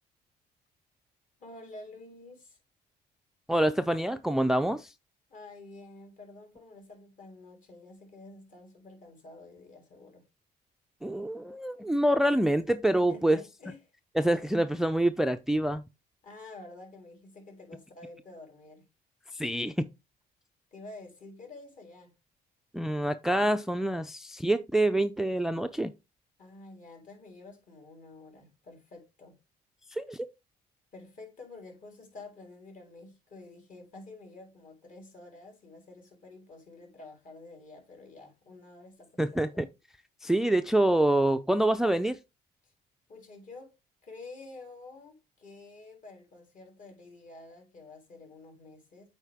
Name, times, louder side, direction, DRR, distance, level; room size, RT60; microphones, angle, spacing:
voice 1, 1.4-2.6 5.3-10.2 13.0-13.8 16.2-18.9 20.7-22.1 26.4-29.4 30.9-39.2 39.5-39.6 42.6-42.7 43.1-43.7 44.0-49.1, left 2 dB, 50° left, 3.8 m, -49 dB
voice 2, 3.5-4.9 11.0-13.4 14.2-15.8 19.3-19.9 22.7-25.9 29.9-30.3 39.2-39.7 40.2-42.2, right 1 dB, ahead, 0.4 m, -26 dB
8.2 x 4.6 x 3.5 m
cardioid pair, 110°, 17 cm